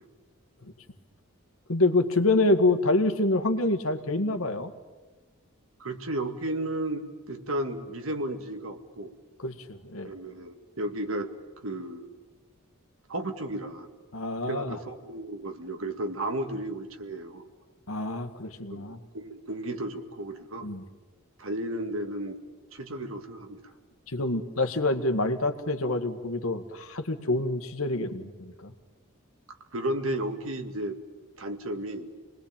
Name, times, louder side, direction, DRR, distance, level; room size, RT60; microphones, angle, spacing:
voice 1, 1.7-4.7 9.4-10.1 14.1-14.8 17.9-19.0 20.6-20.8 24.1-28.7, left 2 dB, 75° left, 8 dB, 1.8 m, -26 dB
voice 2, 5.8-9.1 10.0-11.3 11.6-12.1 13.1-13.9 14.5-17.5 18.7-20.7 21.4-22.4 22.7-23.6 29.7-31.0 31.4-32.1, right 1 dB, 70° right, 6 dB, 2.2 m, -33 dB
28.0 x 20.5 x 8.9 m, 1.3 s
head